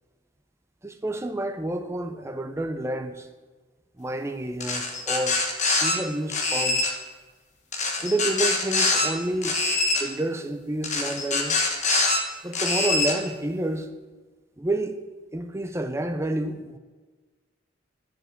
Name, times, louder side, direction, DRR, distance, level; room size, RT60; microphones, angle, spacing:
voice 1, 0.8-3.3 4.0-5.4 5.8-6.9 8.0-9.6 9.9-11.6 12.4-13.9 14.6-15.0 15.3-16.8, right 1 dB, 15° right, 0.5 m, -29 dB
sound 1, 4.6-5.9 6.3-6.9 7.7-9.1 9.4-10.0 10.8-12.2 12.5-13.1, left 3 dB, 35° left, 1.2 m, -24 dB
11.0 x 5.2 x 7.3 m
head